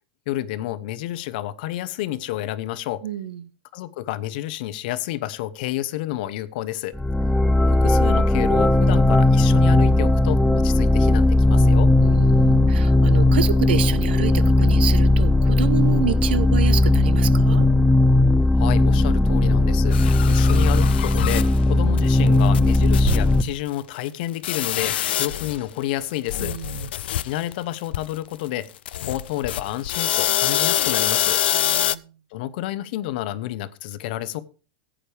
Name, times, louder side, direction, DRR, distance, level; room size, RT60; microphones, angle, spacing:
voice 1, 0.3-3.0 3.7-7.0 7.7-11.9 18.5-20.0 20.3-26.5 27.2-28.7 29.0-31.4 32.3-34.4, left 14 dB, 65° left, 16 dB, 0.8 m, -30 dB
voice 2, 3.0-3.5 12.0-17.7 26.4-26.9 31.5-32.1, right 9 dB, 85° right, 16 dB, 0.8 m, -28 dB
sound 1, 7.0-23.4, left 2 dB, 5° left, 0.6 m, -17 dB
sound 2, 19.9-21.6 22.0-22.1 22.3-22.4 22.5-23.3 23.6-23.7 24.4-25.7 26.0-27.5 27.9-28.1 28.9-32.0, left 12 dB, 85° left, 0.4 m, -25 dB
15.0 x 8.8 x 3.4 m, 0.35 s
supercardioid pair, 120°, 5 cm